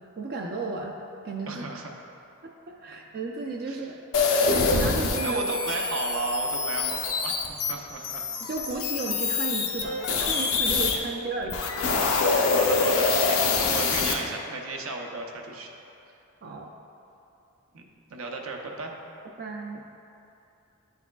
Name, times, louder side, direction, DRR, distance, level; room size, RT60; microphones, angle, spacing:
voice 1, 0.2-1.0 1.2-1.6 2.4-4.0 4.4-5.4 8.5-11.8 16.4-16.7 19.4-19.8, right 3 dB, 45° right, 1 dB, 0.4 m, -34 dB
voice 2, 1.5-1.9 3.7-3.9 5.2-7.4 7.7-8.3 12.5-15.7 17.7-17.8 18.1-18.9, right 3 dB, 80° right, 1 dB, 0.7 m, -34 dB
sound 1, 4.1-11.0 11.4-14.1, left 4 dB, 80° left, 0.6 m, -25 dB
10.5 x 4.7 x 2.3 m, 2.7 s
head